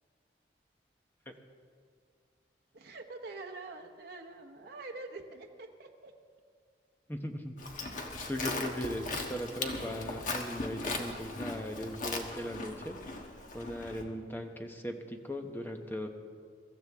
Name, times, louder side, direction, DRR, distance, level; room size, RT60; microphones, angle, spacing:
voice 1, 2.7-6.1, right 3 dB, 60° right, 2 dB, 1.0 m, -45 dB
voice 2, 7.1-7.5 8.3-13.0 13.5-16.1, equal, 10° left, 4 dB, 1.0 m, -38 dB
Livestock farm animals working animals, 7.6-14.0, left 2 dB, 45° left, 1.3 m, -38 dB
23.0 x 14.0 x 3.6 m, 2.1 s
head